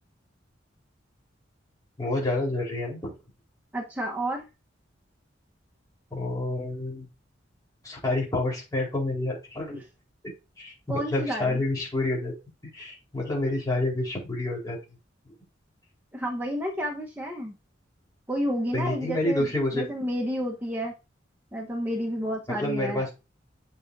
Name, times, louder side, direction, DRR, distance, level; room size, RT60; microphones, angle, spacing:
voice 1, 2.0-3.2 6.1-7.1 7.8-9.8 10.6-12.3 12.7-14.8 18.7-19.9 22.6-23.1, left 2 dB, 20° left, -4 dB, 4.4 m, -28 dB
voice 2, 3.7-4.5 10.9-11.6 16.1-17.5 18.3-20.9 21.5-23.1, equal, 10° right, -1 dB, 1.2 m, -30 dB
8.6 x 6.0 x 2.8 m, 0.27 s
head